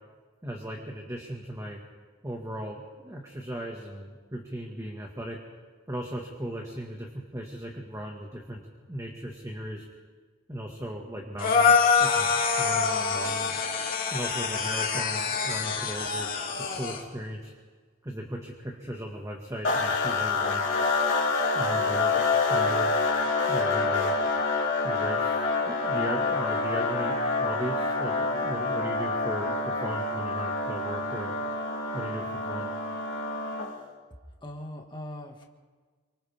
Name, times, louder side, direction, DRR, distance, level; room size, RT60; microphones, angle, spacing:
voice 1, 0.4-1.8 2.2-5.4 5.9-8.6 8.9-9.9 10.5-13.6 14.1-17.5 18.0-20.7 21.5-22.2 22.5-24.1 24.8-31.3 31.9-32.7, equal, 15° right, 0 dB, 1.9 m, -37 dB
Matrix scream, 11.4-17.0, left 5 dB, 45° left, 2.7 m, -25 dB
sound 1, 19.6-33.8, left 3 dB, 65° left, 3.3 m, -27 dB
voice 2, 34.4-35.4, left 1 dB, 25° left, 1 dB, 2.0 m, -40 dB
28.0 x 25.0 x 3.7 m, 1.5 s
head